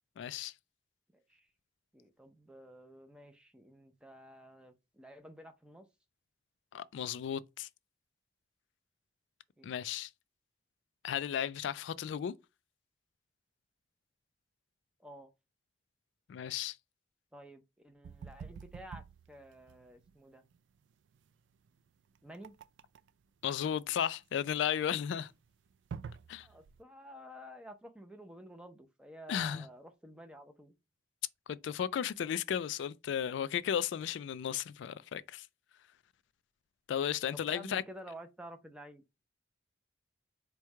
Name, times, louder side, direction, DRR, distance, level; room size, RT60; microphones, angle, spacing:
voice 1, 0.2-0.5 6.7-7.7 9.6-10.1 11.0-12.3 16.3-16.8 23.4-25.3 26.3-26.5 29.3-29.7 31.5-35.5 36.9-37.8, left 9 dB, 85° left, 0.3 m, -34 dB
voice 2, 1.1-1.5 1.9-5.9 9.6-9.7 15.0-15.3 17.3-20.4 22.2-22.6 26.4-30.7 37.3-39.0, equal, 5° right, 0.5 m, -51 dB
sound 1, 18.0-26.8, right 6 dB, 85° right, 0.3 m, -49 dB
4.5 x 2.2 x 4.6 m
head